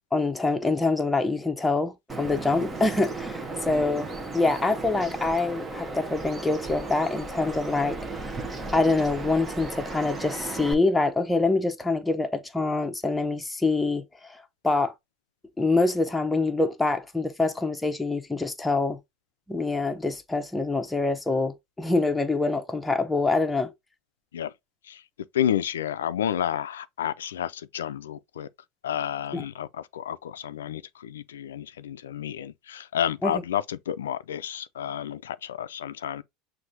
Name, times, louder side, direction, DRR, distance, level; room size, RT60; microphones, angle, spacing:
voice 1, 0.1-8.0 8.7-14.4 14.6-14.9 15.6-19.0 19.5-23.7 29.3-29.4 33.2-33.3, left 3 dB, 10° left, 0.8 m, -25 dB
Bird vocalization bird call bird song, 2.1-10.7, right 3 dB, 25° right, 0.9 m, -35 dB
voice 2, 25.3-28.5 28.8-36.2, left 10 dB, 90° left, 0.3 m, -30 dB
6.1 x 2.6 x 2.7 m
hypercardioid pair, 90°, 0 cm